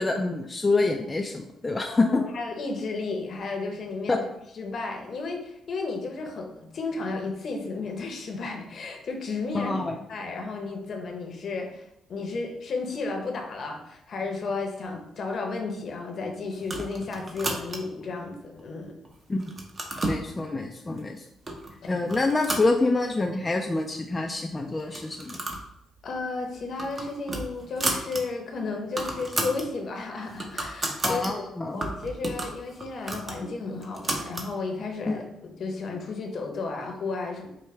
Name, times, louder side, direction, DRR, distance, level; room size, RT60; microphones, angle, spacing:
voice 1, 0.0-2.2 4.1-4.2 9.5-10.0 19.3-19.4 20.0-21.3 21.9-25.4 31.0-31.8 35.1-35.2, left 3 dB, 25° left, 2 dB, 0.3 m, -26 dB
voice 2, 1.9-4.3 4.5-9.8 10.1-18.9 21.8-21.9 26.0-31.5 31.7-37.5, left 3 dB, 55° left, 2 dB, 0.8 m, -33 dB
sound 1, 16.6-18.0 18.6-19.1 19.4-20.2 21.0-21.1 21.5-21.7 22.1-23.3 23.6-23.7 23.9-24.0 24.8-25.7 26.0-26.2 26.6-28.2 28.5-28.6 28.8-29.7 30.1-31.3 31.8-34.5, right 2 dB, 30° right, 0.7 m, -32 dB
4.8 x 2.1 x 3.2 m, 0.81 s
cardioid pair, 90°, 0 cm